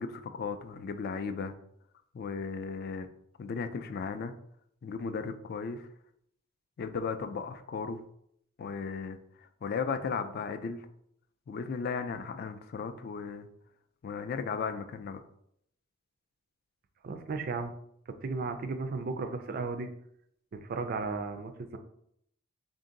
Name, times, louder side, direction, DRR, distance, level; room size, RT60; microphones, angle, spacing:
voice 1, 0.0-1.5 2.1-3.1 3.4-4.3 4.8-5.9 6.8-8.0 8.6-10.9 11.5-13.5 14.0-15.2, left 5 dB, 45° left, 9 dB, 0.3 m, -36 dB
voice 2, 17.0-17.7 18.2-19.9 20.5-21.8, right 4 dB, 45° right, 7 dB, 0.4 m, -35 dB
3.7 x 2.6 x 3.8 m, 0.71 s
head